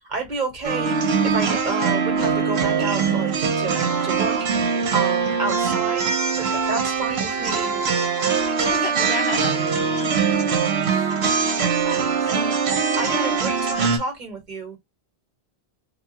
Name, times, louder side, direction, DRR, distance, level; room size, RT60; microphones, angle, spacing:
voice 1, 0.1-4.4 4.9-7.8 11.8-12.6 12.9-14.8, right 3 dB, 50° right, 1.2 m, -30 dB
sound 1, 0.6-14.0, right 5 dB, 80° right, 1.0 m, -22 dB
voice 2, 8.6-11.1 11.4-11.6, left 7 dB, 80° left, 1.1 m, -35 dB
2.8 x 2.3 x 2.8 m
omnidirectional pair, 1.1 m